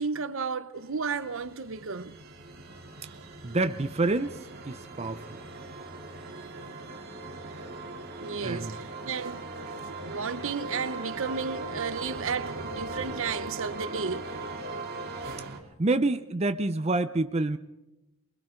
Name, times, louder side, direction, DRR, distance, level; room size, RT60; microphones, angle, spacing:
voice 1, 0.0-2.2 3.1-3.2 6.5-6.7 8.2-14.3 15.6-15.7, right 5 dB, 65° right, 0.8 m, -33 dB
sound 1, 0.9-15.6, right 2 dB, 45° right, 2.1 m, -39 dB
voice 2, 3.4-5.4 8.4-8.8 15.5-17.6, right 2 dB, 30° right, 0.6 m, -28 dB
27.5 x 21.0 x 4.5 m
head